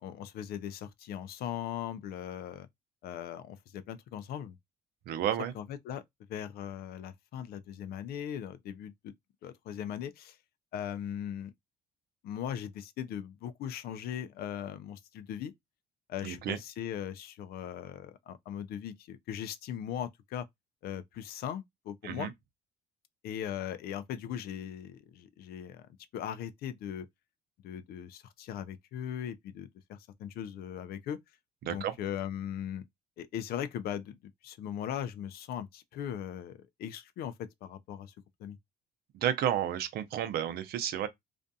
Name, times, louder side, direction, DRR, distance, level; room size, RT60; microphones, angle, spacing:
voice 1, 0.0-2.7 3.0-4.6 5.5-6.0 6.3-9.1 9.4-10.4 10.7-11.5 12.2-15.5 16.1-20.5 20.8-22.3 23.2-25.9 26.1-27.1 27.6-31.2 31.7-32.9 33.2-34.2 34.4-38.1 38.4-38.6, left 9 dB, 65° left, 0.4 m, -39 dB
voice 2, 5.1-5.5 16.2-16.6 22.0-22.3 31.6-31.9 39.1-41.1, right 10 dB, 65° right, 0.6 m, -31 dB
2.5 x 2.2 x 2.6 m
cardioid pair, 110°, 17 cm